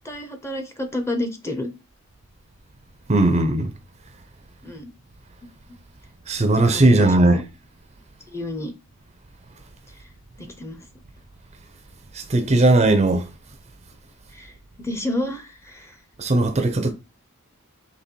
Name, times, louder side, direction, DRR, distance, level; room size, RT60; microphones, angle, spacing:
voice 1, 0.0-1.7 3.3-3.5 4.6-4.9 6.5-7.4 8.3-8.7 9.9-10.1 10.4-10.9 14.3-16.0, left 1 dB, 10° left, 0.7 m, -30 dB
voice 2, 3.1-3.7 6.3-7.5 12.1-13.3 16.2-16.9, right 2 dB, 30° right, 0.5 m, -18 dB
4.1 x 3.0 x 4.4 m
head